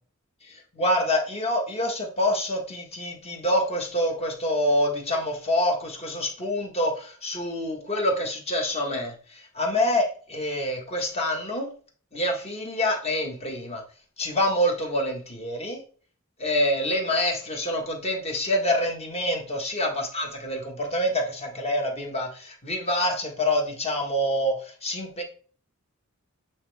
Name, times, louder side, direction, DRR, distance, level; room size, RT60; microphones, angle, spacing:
voice 1, 0.4-11.7 12.1-13.8 14.2-15.8 16.4-25.2, left 1 dB, 30° left, 1 dB, 1.5 m, -26 dB
8.6 x 4.4 x 3.5 m, 0.42 s
head